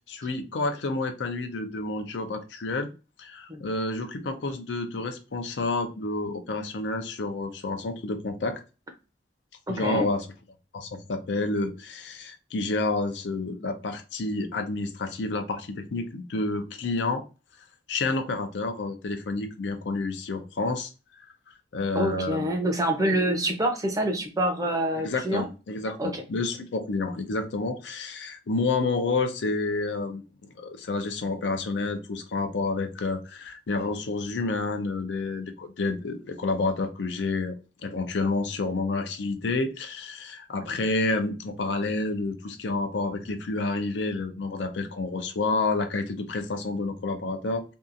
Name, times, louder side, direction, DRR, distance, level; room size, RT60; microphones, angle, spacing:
voice 1, 0.1-2.9 3.2-8.6 9.7-10.3 10.7-17.2 17.9-20.9 21.2-21.3 21.7-22.5 25.0-30.2 30.6-47.6, left 3 dB, 80° left, 0.5 m, -29 dB
voice 2, 9.7-10.1 21.9-25.5 26.0-26.2 40.7-40.8, right 1 dB, 20° right, 0.6 m, -26 dB
2.7 x 2.3 x 2.5 m
head